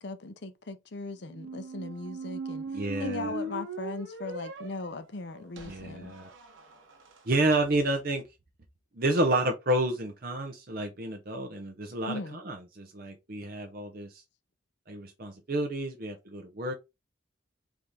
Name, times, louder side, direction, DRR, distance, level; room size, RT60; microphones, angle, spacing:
voice 1, 0.0-2.6 3.0-6.1 12.0-12.4, left 3 dB, 60° left, 0.6 m, -38 dB
sound 1, 1.3-7.2, right 2 dB, 85° right, 0.9 m, -39 dB
voice 2, 2.7-3.3 5.7-6.3 7.3-8.2 9.0-14.1 14.9-16.7, right 1 dB, 50° right, 0.7 m, -30 dB
4.7 x 2.7 x 3.5 m
head